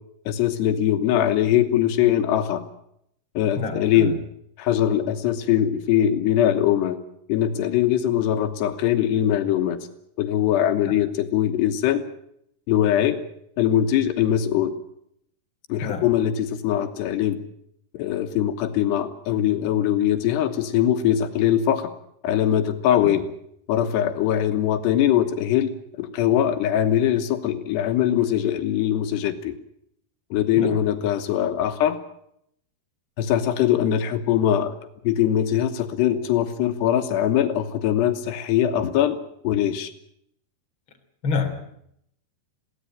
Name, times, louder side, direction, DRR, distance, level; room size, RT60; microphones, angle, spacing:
voice 1, 0.3-2.6 3.3-4.1 4.6-7.0 7.3-9.8 10.2-12.0 12.7-13.2 13.6-14.7 15.7-17.4 17.9-21.9 22.2-23.2 23.7-25.7 26.0-29.5 30.3-32.0 33.2-34.7 35.0-39.2 39.4-39.9, left 10 dB, 85° left, 7 dB, 3.3 m, -21 dB
voice 2, 3.6-4.2 10.8-10.9 15.8-16.0 22.9-23.2 30.6-30.8 41.2-41.6, left 4 dB, 30° left, 4 dB, 3.4 m, -28 dB
22.0 x 17.0 x 8.9 m, 0.73 s
omnidirectional pair, 4.8 m